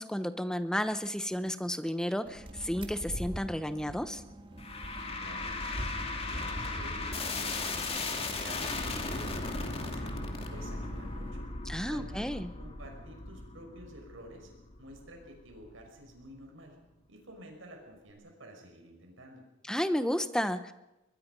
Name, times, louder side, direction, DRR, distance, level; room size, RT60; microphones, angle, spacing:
voice 1, 0.0-4.2 11.7-12.5 19.7-20.7, equal, 5° left, 11 dB, 0.9 m, -32 dB
sound 1, 2.2-11.3, right 1 dB, 25° right, 2.2 m, -44 dB
sound 2, 4.6-15.8, left 3 dB, 30° left, 2.6 m, -37 dB
voice 2, 5.2-5.9 6.2-10.1 10.5-11.5 11.9-14.5 14.8-16.8 17.1-19.4, right 1 dB, 80° right, 3 dB, 6.0 m, -50 dB
22.5 x 22.0 x 5.4 m, 0.97 s
head